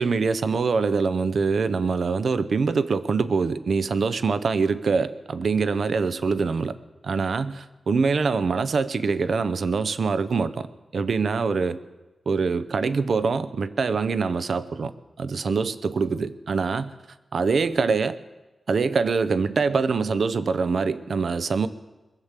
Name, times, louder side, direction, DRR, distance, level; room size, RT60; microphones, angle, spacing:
voice 1, 0.0-6.8 7.0-10.7 10.9-11.8 12.3-14.9 15.2-16.9 17.3-18.2 18.7-21.7, right 4 dB, 70° right, 14 dB, 0.7 m, -24 dB
21.5 x 7.4 x 8.2 m, 1.1 s
wide cardioid pair, 115°, 0 cm